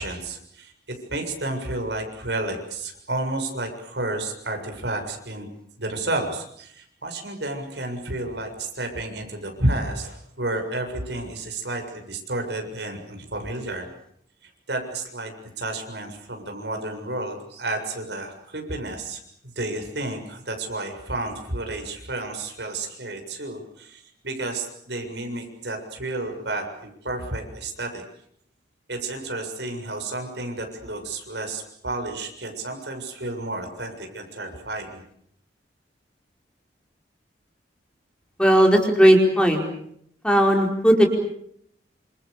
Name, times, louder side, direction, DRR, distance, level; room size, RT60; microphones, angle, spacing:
voice 1, 0.0-5.5 5.8-13.9 14.7-19.2 19.6-28.0 28.9-35.0, right 2 dB, 70° right, 5 dB, 7.1 m, -31 dB
voice 2, 38.4-39.6 40.2-41.1, equal, 5° left, 2 dB, 4.8 m, -16 dB
29.0 x 27.0 x 6.9 m, 0.69 s
head